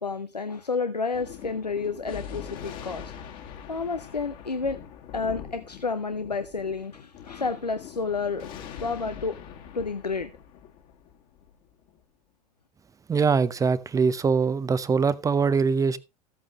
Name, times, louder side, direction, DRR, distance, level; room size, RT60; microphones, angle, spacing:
voice 1, 0.0-3.1 3.7-4.8 5.1-8.5 8.8-9.4 9.7-10.3, left 4 dB, 90° left, 0.7 m, -30 dB
Thunder, 1.1-12.0, left 8 dB, 45° left, 2.2 m, -43 dB
voice 2, 13.1-16.0, right 5 dB, 15° right, 0.6 m, -23 dB
14.5 x 8.5 x 3.1 m
figure-of-eight pair, 85°, 20 cm